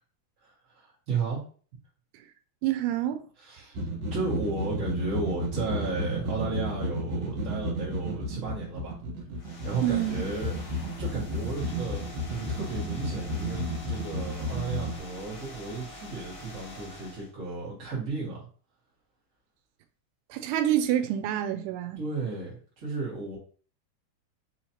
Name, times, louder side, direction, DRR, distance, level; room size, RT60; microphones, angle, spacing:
voice 1, 0.4-1.4 3.4-3.8 4.1-8.9 9.4-10.5 11.0-18.5 22.0-23.4, right 3 dB, 40° right, 1.1 m, -34 dB
voice 2, 2.6-3.2 9.8-10.3 20.3-22.0, right 11 dB, 85° right, 2.6 m, -27 dB
sound 1, 3.7-15.0, equal, 70° right, 2.9 m, -33 dB
sound 2, 9.4-17.3, left 1 dB, 85° left, 1.1 m, -45 dB
6.2 x 3.0 x 2.8 m
omnidirectional pair, 4.6 m